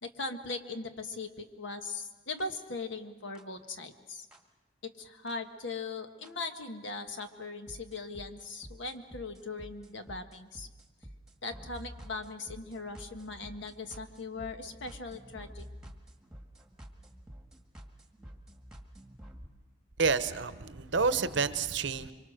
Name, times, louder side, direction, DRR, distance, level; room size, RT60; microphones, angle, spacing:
voice 1, 0.0-4.3 4.8-10.7 11.4-15.6, left 3 dB, 65° left, 7 dB, 1.5 m, -40 dB
sound 1, 2.4-2.5 3.4-3.5 4.3-4.4 5.3-5.4 6.2-6.3 7.2-7.3 7.7-19.5, equal, 5° right, 1.6 m, -50 dB
voice 2, 20.0-22.1, right 5 dB, 60° right, 12 dB, 0.9 m, -29 dB
25.0 x 24.5 x 6.5 m, 1.2 s
head